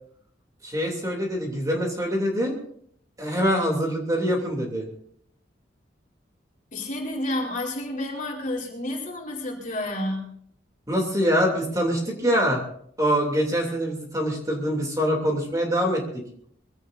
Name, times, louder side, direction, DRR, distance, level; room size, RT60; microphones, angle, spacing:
voice 1, 0.6-2.5 3.2-4.9 10.9-12.6 13.0-16.2, equal, 20° right, 0 dB, 2.9 m, -24 dB
voice 2, 6.7-10.2, left 1 dB, 45° left, -1 dB, 3.9 m, -30 dB
22.5 x 16.5 x 2.7 m, 0.65 s
head